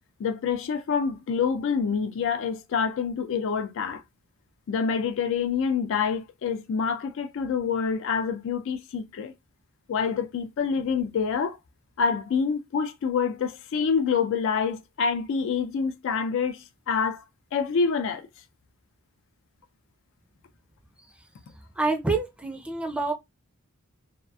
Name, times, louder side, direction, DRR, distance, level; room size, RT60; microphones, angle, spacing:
voice 1, 0.2-4.0 4.7-9.3 9.9-11.6 12.0-17.2 17.5-18.3, left 6 dB, 65° left, 0.3 m, -27 dB
voice 2, 21.8-23.1, right 3 dB, 5° right, 0.4 m, -27 dB
2.7 x 2.3 x 2.2 m
head